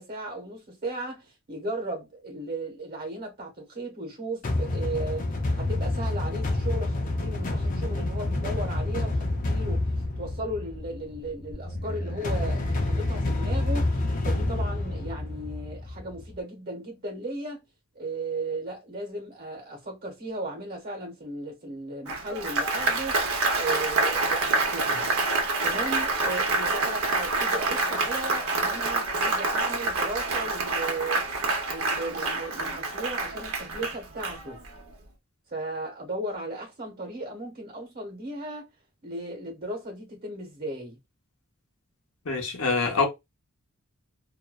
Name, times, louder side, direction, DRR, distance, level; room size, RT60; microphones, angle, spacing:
voice 1, 0.0-5.3 5.6-9.9 10.2-17.6 17.9-23.2 23.5-25.1 25.6-31.3 31.7-34.6 35.5-38.7 39.0-41.0, right 2 dB, 45° right, 1.1 m, -36 dB
sound 1, 4.4-16.3, left 2 dB, 40° left, 0.4 m, -28 dB
Applause, 22.1-34.8, right 3 dB, 85° right, 0.7 m, -27 dB
voice 2, 42.3-43.1, left 4 dB, 80° left, 0.8 m, -25 dB
2.5 x 2.2 x 2.2 m
head